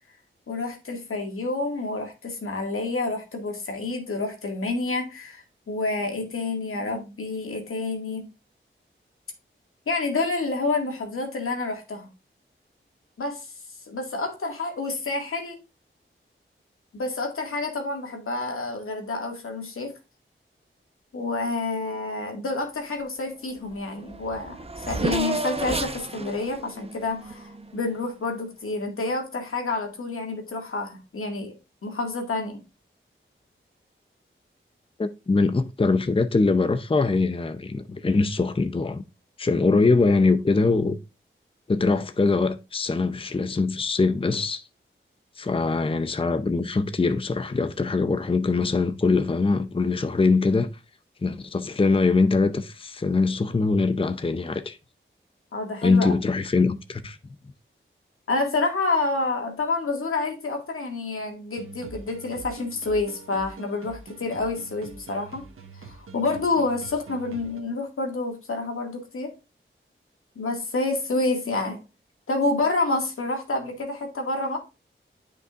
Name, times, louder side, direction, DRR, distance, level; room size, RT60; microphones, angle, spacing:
voice 1, 0.5-8.3 9.9-12.1 13.2-13.5 13.9-15.6 16.9-19.9 21.1-31.6 31.8-32.6 55.5-56.1 58.3-65.4 65.8-69.3 70.4-71.8 72.3-74.6, left 3 dB, 85° left, 2.0 m, -28 dB
Race car auto racing / Accelerating revving vroom, 23.7-23.8 24.0-28.0, right 3 dB, 30° right, 0.8 m, -31 dB
voice 2, 35.0-39.0 39.4-41.0 41.7-44.6 45.4-50.7 51.2-54.8 55.8-57.2, left 3 dB, 25° left, 0.6 m, -22 dB
sound 1, 61.6-67.6, right 4 dB, 85° right, 1.2 m, -44 dB
9.5 x 5.3 x 2.4 m
wide cardioid pair, 75°, 21 cm